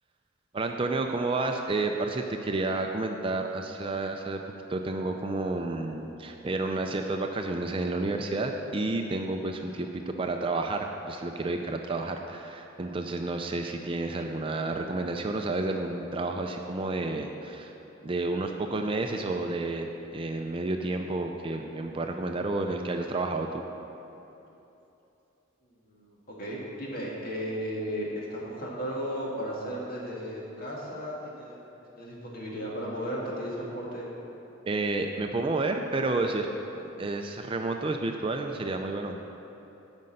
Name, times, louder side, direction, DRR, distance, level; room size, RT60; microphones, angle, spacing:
voice 1, 0.5-4.4 4.7-17.7 18.0-19.9 20.1-23.6 34.7-36.5 37.0-39.2, right 2 dB, 25° right, 4 dB, 0.4 m, -30 dB
voice 2, 25.9-31.6 31.9-34.1, equal, 45° left, -4 dB, 2.0 m, -35 dB
9.6 x 5.4 x 7.7 m, 3.0 s
head